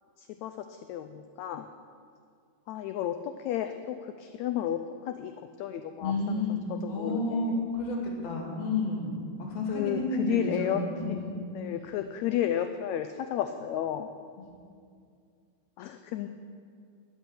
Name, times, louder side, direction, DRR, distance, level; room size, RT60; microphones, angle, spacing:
voice 1, 0.2-1.7 2.7-6.4 6.7-7.6 9.7-10.0 10.3-10.8 11.1-11.2 11.5-14.1 15.8-16.3, left 11 dB, 85° left, 8 dB, 1.6 m, -33 dB
voice 2, 6.0-11.3, left 2 dB, 55° left, 0 dB, 3.3 m, -31 dB
13.5 x 6.2 x 9.9 m, 2.3 s
omnidirectional pair, 3.8 m